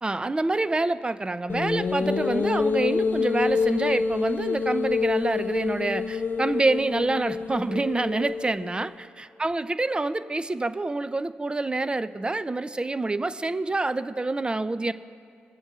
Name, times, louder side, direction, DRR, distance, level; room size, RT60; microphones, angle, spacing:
voice 1, 0.0-14.9, right 2 dB, 20° right, 13 dB, 0.4 m, -27 dB
sound 1, 1.5-8.9, left 5 dB, 45° left, 0.4 m, -27 dB
23.5 x 8.1 x 2.4 m, 2.3 s
supercardioid pair, 50°, 4 cm